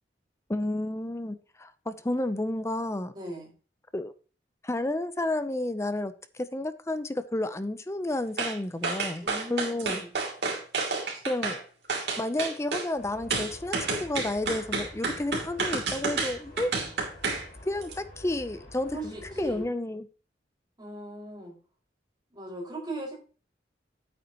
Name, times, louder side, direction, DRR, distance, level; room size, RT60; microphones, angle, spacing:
voice 1, 0.5-3.1 3.9-4.1 4.6-9.2 9.5-10.0 11.3-11.7 12.2-16.7 17.6-20.1, left 1 dB, 15° left, 11 dB, 0.6 m, -31 dB
voice 2, 3.1-3.5 9.2-10.1 18.9-19.6 20.8-21.5 22.3-23.1, right 1 dB, 25° right, -3 dB, 5.1 m, -38 dB
sound 1, 8.4-8.6 8.8-11.6 11.9-12.9 13.3-17.5 17.8-17.9, right 3 dB, 70° right, 2.9 m, -30 dB
sound 2, 13.0-19.7, left 1 dB, 50° left, 4.7 m, -48 dB
9.6 x 8.7 x 3.0 m, 0.37 s
head